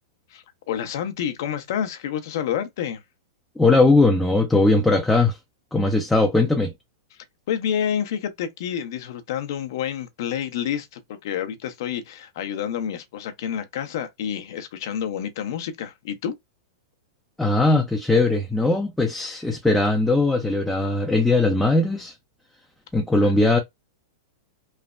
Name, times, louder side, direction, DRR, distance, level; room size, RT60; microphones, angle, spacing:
voice 1, 0.3-3.0 7.5-16.3 23.2-23.3, left 9 dB, 65° left, 0.6 m, -29 dB
voice 2, 3.6-5.4 5.7-6.7 17.4-22.1 22.9-23.6, left 2 dB, 5° left, 0.4 m, -19 dB
3.1 x 2.0 x 2.4 m
hypercardioid pair, 140°, 2 cm